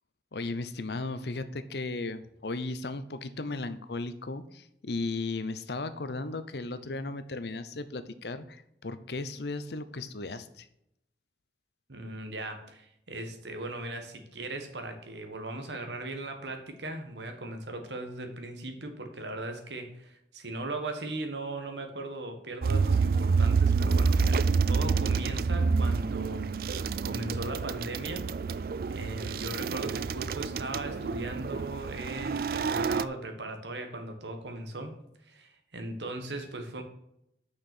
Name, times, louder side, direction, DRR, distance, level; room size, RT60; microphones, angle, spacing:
voice 1, 0.3-10.7, left 3 dB, 70° left, 12 dB, 0.7 m, -36 dB
voice 2, 11.9-28.6 28.9-35.0 35.2-36.8, right 2 dB, 85° right, 5 dB, 1.6 m, -38 dB
sound 1, 22.6-33.1, right 5 dB, 55° right, 0.3 m, -28 dB
6.7 x 5.8 x 6.2 m, 0.77 s
head